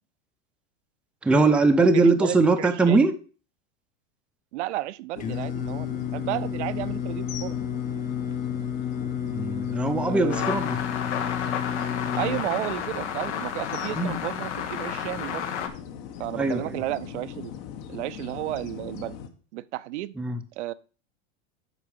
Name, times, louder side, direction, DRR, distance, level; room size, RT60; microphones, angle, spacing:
voice 1, 1.2-3.1 9.3-10.7 14.0-14.2 16.4-16.8 20.2-20.4, right 3 dB, 5° right, 6 dB, 0.5 m, -21 dB
voice 2, 1.9-3.1 4.5-7.6 10.0-10.6 12.1-15.5 16.2-17.5 17.9-19.2 19.5-20.1 20.6-20.7, right 16 dB, 80° right, 14 dB, 0.6 m, -33 dB
sound 1, 5.1-19.3, left 8 dB, 55° left, 1.2 m, -39 dB
Singing, 5.2-12.4, left 8 dB, 25° left, 0.8 m, -31 dB
sound 2, 10.3-15.7, left 8 dB, 85° left, 1.4 m, -32 dB
8.3 x 5.4 x 4.9 m, 0.36 s
supercardioid pair, 135°, 34 cm